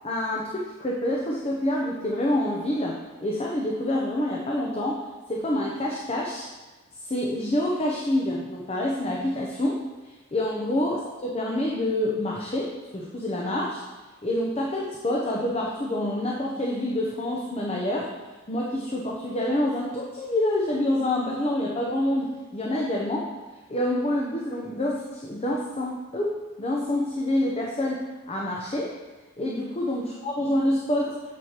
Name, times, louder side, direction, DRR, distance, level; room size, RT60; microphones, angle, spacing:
voice 1, 0.0-5.0 5.3-6.5 7.1-11.0 11.3-13.8 14.2-18.1 18.5-23.3 23.7-28.9 29.4-31.1, left 1 dB, 30° left, -2 dB, 0.7 m, -27 dB
9.2 x 6.3 x 2.9 m, 1.2 s
head